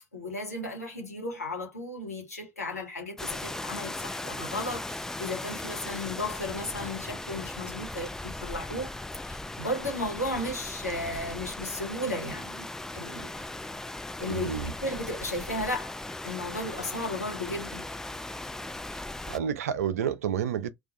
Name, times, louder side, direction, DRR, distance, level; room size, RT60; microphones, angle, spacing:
voice 1, 0.1-13.5 14.2-14.5 14.8-15.9 16.2-17.9, left 1 dB, 85° left, 1.0 m, -35 dB
Rain, 3.2-19.4, left 2 dB, 5° left, 0.3 m, -38 dB
voice 2, 14.3-14.7 18.9-19.0 19.3-20.7, right 8 dB, 75° right, 0.4 m, -30 dB
2.4 x 2.2 x 3.7 m
figure-of-eight pair, 60°, 8 cm